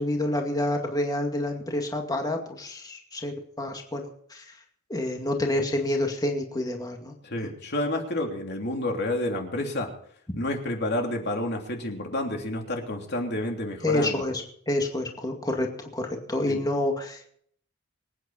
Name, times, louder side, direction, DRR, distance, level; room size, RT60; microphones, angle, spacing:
voice 1, 0.0-4.5 4.9-7.1 7.4-7.5 13.8-17.3, left 1 dB, 20° left, 2 dB, 2.2 m, -28 dB
voice 2, 7.2-9.9 10.4-14.3 16.5-16.6, left 1 dB, 50° left, 2 dB, 3.1 m, -29 dB
25.5 x 9.5 x 4.3 m, 0.63 s
head